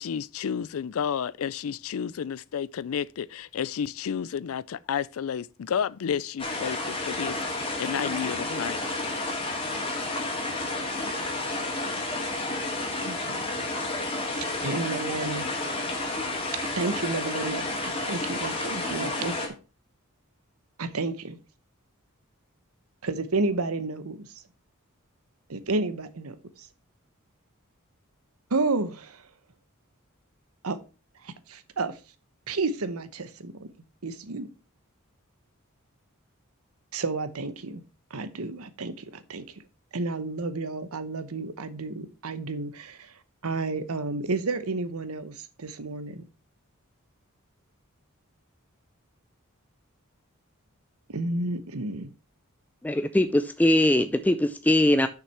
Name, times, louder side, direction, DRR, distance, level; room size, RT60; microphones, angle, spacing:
voice 1, 0.0-8.9, left 7 dB, 75° left, 0.4 m, -31 dB
sound 1, 6.4-19.5, left 2 dB, 25° left, 2.1 m, -31 dB
voice 2, 13.0-13.7 14.4-15.5 16.8-19.5 20.8-21.4 23.0-24.3 25.5-26.3 28.5-29.2 30.6-30.8 31.2-32.0 32.5-33.7 34.0-34.5 36.9-37.8 38.1-39.5 39.9-43.1 43.4-46.2 51.1-52.1, right 3 dB, 85° right, 1.0 m, -31 dB
voice 3, 52.8-55.1, left 1 dB, 5° left, 0.3 m, -21 dB
6.5 x 5.8 x 5.7 m
head